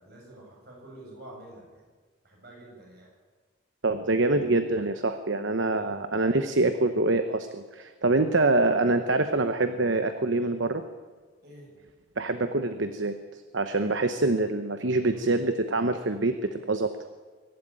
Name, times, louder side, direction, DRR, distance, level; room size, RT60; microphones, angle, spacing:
voice 1, 0.0-1.8 2.2-3.1 5.7-5.9 11.4-11.7, right 1 dB, 50° right, -1 dB, 7.8 m, -48 dB
voice 2, 3.8-10.8 12.2-13.2 13.5-16.9, right 2 dB, 70° right, 9 dB, 1.0 m, -25 dB
23.5 x 12.0 x 9.1 m, 1.4 s
head